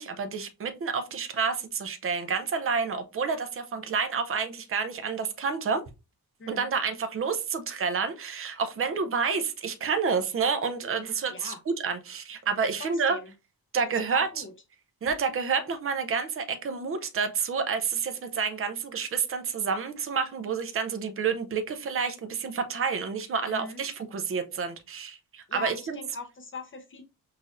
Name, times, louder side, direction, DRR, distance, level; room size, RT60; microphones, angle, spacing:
voice 1, 0.0-5.8 6.5-13.2 13.7-14.3 15.0-26.0, right 5 dB, 35° right, 0.5 m, -29 dB
voice 2, 6.4-6.7 11.3-11.6 12.9-13.3 14.1-14.5 23.5-23.8 25.5-27.0, left 4 dB, 30° left, 0.7 m, -41 dB
5.7 x 2.5 x 2.5 m
wide cardioid pair, 170°, 38 cm